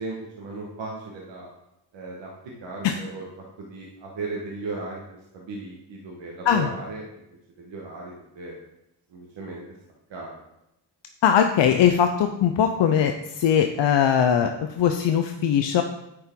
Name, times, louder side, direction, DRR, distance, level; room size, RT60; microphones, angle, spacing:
voice 1, 0.0-1.5 1.9-2.3 2.6-3.2 3.6-8.6 9.1-9.6 10.1-10.4, right 3 dB, 85° right, -2 dB, 1.3 m, -36 dB
voice 2, 11.2-15.8, left 8 dB, 75° left, 6 dB, 0.6 m, -20 dB
9.6 x 4.5 x 3.7 m, 0.85 s
cardioid pair, 60°, 44 cm